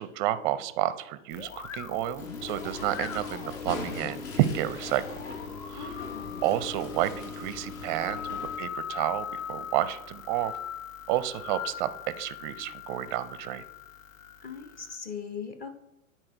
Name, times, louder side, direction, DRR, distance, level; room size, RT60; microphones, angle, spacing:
voice 1, 0.0-5.0 5.7-6.1 6.4-10.5 11.1-11.9 12.2-13.6, right 13 dB, 35° right, 14 dB, 0.5 m, -30 dB
sound 1, 1.3-15.0, left 8 dB, 65° left, 1.0 m, -41 dB
sound 2, 2.2-8.6, left 4 dB, 50° left, 1.6 m, -39 dB
voice 2, 5.7-6.4 14.4-15.7, left 6 dB, 20° left, 8 dB, 0.7 m, -40 dB
9.9 x 4.3 x 4.4 m, 0.83 s
hypercardioid pair, 125°, 42 cm